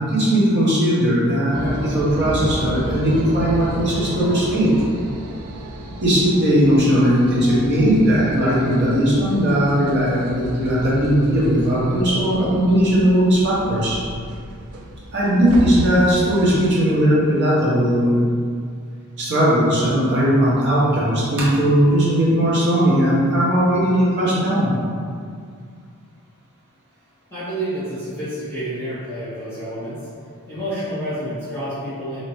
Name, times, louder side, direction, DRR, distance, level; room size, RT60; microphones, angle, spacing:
voice 1, 0.0-4.7 6.0-14.0 15.1-18.2 19.2-24.8, equal, 50° right, -8 dB, 1.0 m, -18 dB
sound 1, 1.5-16.7, right 1 dB, 70° right, 0.4 m, -32 dB
voice 2, 27.3-30.0 30.5-32.2, right 1 dB, 10° left, -15 dB, 1.3 m, -29 dB
3.0 x 2.8 x 3.0 m, 2.2 s
head